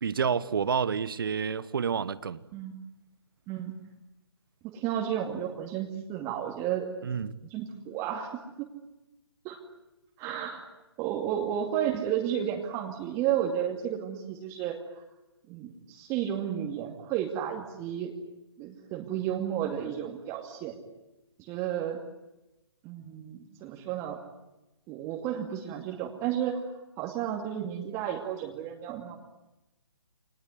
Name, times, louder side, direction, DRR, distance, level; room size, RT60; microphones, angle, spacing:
voice 1, 0.0-2.4 7.0-7.4, right 6 dB, 55° right, 1.3 m, -29 dB
voice 2, 4.6-6.9 7.5-8.3 8.6-8.7 9.4-9.6 10.2-10.6 11.0-14.8 15.5-18.1 18.6-20.8 21.4-22.0 22.8-24.2 24.9-26.6 27.0-29.2, right 10 dB, 20° right, 2.4 m, -32 dB
27.5 x 20.0 x 9.5 m
figure-of-eight pair, 135°, 14 cm